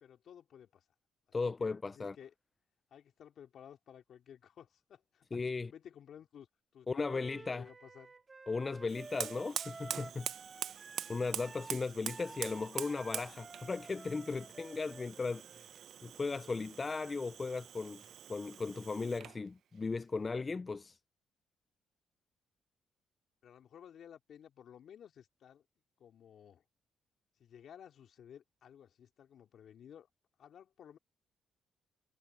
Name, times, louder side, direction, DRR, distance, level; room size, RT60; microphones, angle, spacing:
voice 1, 0.0-0.8 1.4-2.3 2.9-6.5 6.7-8.1 10.5-11.1 23.4-25.6 26.0-26.6 27.4-30.1 30.4-31.0, left 9 dB, 65° left, 2.7 m, -55 dB
voice 2, 1.3-2.2 5.3-5.7 6.9-7.7 8.5-10.3 10.7-10.8 11.1-15.7 16.0-18.0 18.3-21.0, left 4 dB, 30° left, 0.3 m, -37 dB
Wind instrument woodwind instrument, 7.0-16.8, right 3 dB, 25° right, 2.1 m, -53 dB
Fire, 8.9-19.4, right 9 dB, 65° right, 0.7 m, -44 dB
cardioid pair, 90°, 0 cm